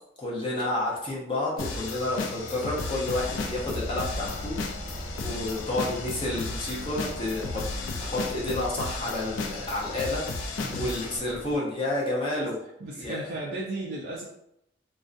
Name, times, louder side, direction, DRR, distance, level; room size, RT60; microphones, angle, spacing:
voice 1, 0.2-7.6 8.0-12.6 12.9-13.2, left 2 dB, 25° left, -4 dB, 0.5 m, -30 dB
sound 1, 1.6-11.2, left 3 dB, 85° left, 0.4 m, -34 dB
Engine, 3.1-11.6, equal, 50° left, 0.9 m, -41 dB
voice 2, 10.6-11.0 12.8-14.3, right 2 dB, 60° right, -5 dB, 0.4 m, -35 dB
2.5 x 2.2 x 2.4 m, 0.80 s
head